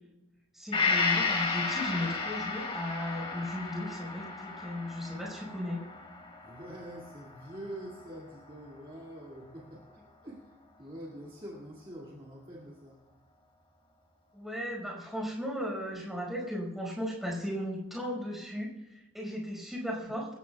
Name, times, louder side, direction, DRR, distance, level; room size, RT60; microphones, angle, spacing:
voice 1, 0.5-5.8 14.3-20.3, left 1 dB, ahead, -2 dB, 5.1 m, -36 dB
Gong, 0.7-8.4 8.7-8.8, left 4 dB, 25° left, 2.5 m, -33 dB
voice 2, 6.4-13.0 20.0-20.1, right 1 dB, 25° right, -4 dB, 2.3 m, -45 dB
26.0 x 14.5 x 2.4 m, 1.0 s
head